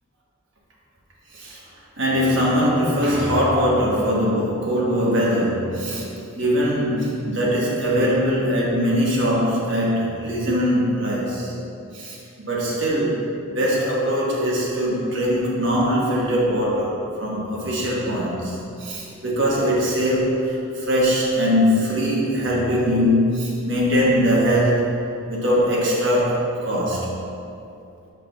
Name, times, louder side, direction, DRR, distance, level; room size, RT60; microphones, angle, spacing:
voice 1, 2.0-6.1 6.3-11.5 11.9-24.9 25.3-27.1, equal, 60° right, -5 dB, 1.3 m, -21 dB
6.0 x 4.8 x 3.5 m, 2.7 s
head